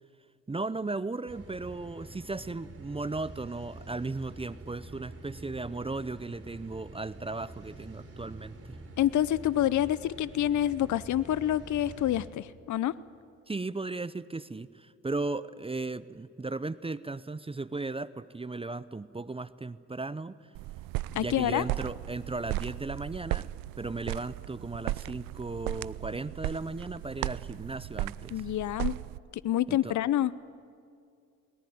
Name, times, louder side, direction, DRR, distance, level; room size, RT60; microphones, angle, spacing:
voice 1, 0.5-8.8 13.5-20.3 21.1-23.5 23.8-28.4 29.7-29.9, right 3 dB, 15° right, 17 dB, 0.7 m, -36 dB
sound 1, 1.3-12.3, right 2 dB, 40° right, 3.7 m, -47 dB
voice 2, 9.0-12.9 21.1-21.6 28.3-28.9 29.3-30.3, left 12 dB, 50° left, 18 dB, 0.7 m, -27 dB
sound 2, 20.5-29.2, right 18 dB, 65° right, 0.5 m, -36 dB
21.5 x 19.0 x 9.7 m, 2.4 s
hypercardioid pair, 50°, 36 cm